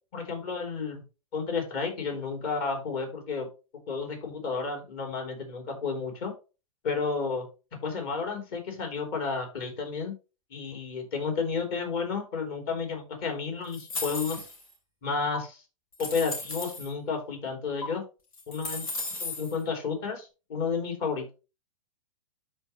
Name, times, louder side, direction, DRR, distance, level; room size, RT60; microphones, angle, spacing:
voice 1, 0.1-1.0 1.3-3.5 3.9-6.3 6.8-7.5 7.8-10.1 10.5-14.4 15.0-15.6 16.0-18.0 18.5-18.9 19.2-21.3, left 5 dB, 45° left, 3 dB, 3.6 m, -31 dB
sound 1, 13.7-14.7 15.3-15.4 15.9-16.9 17.8-17.9 18.3-19.5, left 2 dB, 75° left, 3.6 m, -35 dB
12.5 x 4.5 x 3.1 m, 0.30 s
hypercardioid pair, 120°, 18 cm